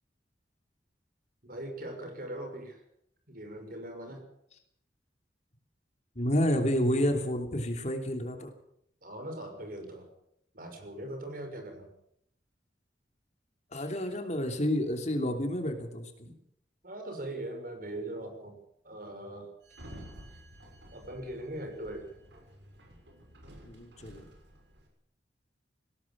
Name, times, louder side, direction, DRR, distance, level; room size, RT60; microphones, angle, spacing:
voice 1, 1.4-2.8 3.3-4.2 9.0-10.1 10.5-11.9 16.2-16.4 16.8-18.6 18.8-19.5 20.9-22.1, right 1 dB, 50° right, 5 dB, 6.1 m, -40 dB
voice 2, 6.1-8.5 13.7-16.1 23.7-24.3, equal, 40° left, 5 dB, 3.2 m, -29 dB
Sliding door, 19.6-24.9, equal, 70° right, 6.4 m, -51 dB
20.0 x 17.5 x 7.5 m, 0.73 s
head